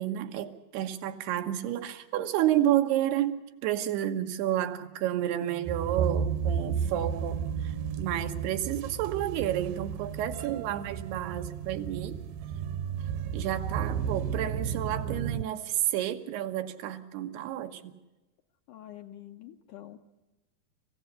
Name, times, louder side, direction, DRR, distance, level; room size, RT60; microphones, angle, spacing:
voice 1, 0.0-12.2 13.3-17.9, right 12 dB, 90° right, 7 dB, 3.3 m, -30 dB
sound 1, 5.7-15.4, right 7 dB, 75° right, 2.5 m, -33 dB
voice 2, 18.7-20.0, left 12 dB, 75° left, 6 dB, 2.0 m, -46 dB
26.5 x 16.0 x 8.3 m, 1.1 s
omnidirectional pair, 4.5 m